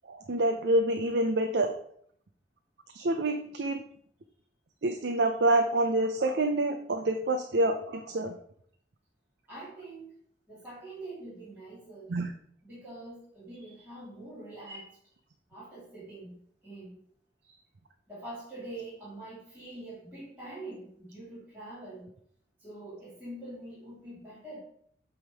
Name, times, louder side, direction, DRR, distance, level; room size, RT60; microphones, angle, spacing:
voice 1, 0.1-1.7 2.9-3.8 4.8-8.3 12.1-12.3 14.7-14.8, right 1 dB, 70° right, 6 dB, 0.6 m, -27 dB
voice 2, 9.5-10.2 10.5-12.1 12.6-14.9 15.5-16.9 18.1-22.1 22.6-24.6, right 2 dB, 10° right, -12 dB, 2.4 m, -44 dB
8.1 x 3.6 x 4.7 m, 0.65 s
head